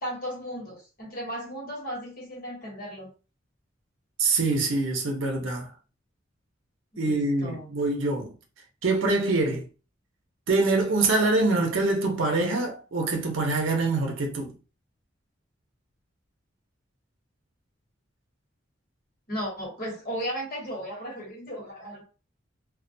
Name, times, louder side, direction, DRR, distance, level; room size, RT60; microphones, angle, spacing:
voice 1, 0.0-3.1 6.9-7.7 19.3-22.0, equal, 50° left, 1.1 m, -35 dB
voice 2, 4.2-5.6 7.0-8.3 8.8-9.7 10.5-14.5, right 3 dB, 85° right, 0.6 m, -24 dB
2.3 x 2.1 x 2.6 m
head